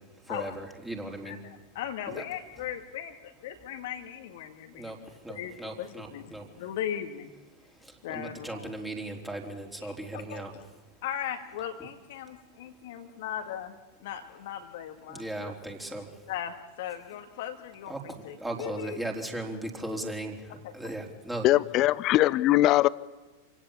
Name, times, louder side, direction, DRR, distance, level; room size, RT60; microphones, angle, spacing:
voice 1, 0.0-1.4 2.1-2.2 4.7-6.5 7.7-10.5 15.1-16.2 17.9-21.5, right 1 dB, 5° right, 1 dB, 4.1 m, -37 dB
voice 2, 1.2-5.0 5.3-7.3 8.0-8.7 9.8-10.4 11.0-15.5 16.3-19.0 20.6-20.9, left 10 dB, 55° left, 6 dB, 2.0 m, -38 dB
voice 3, 21.4-22.9, left 16 dB, 40° left, 20 dB, 0.8 m, -21 dB
27.0 x 17.0 x 8.7 m, 1.2 s
figure-of-eight pair, 90°, 0 cm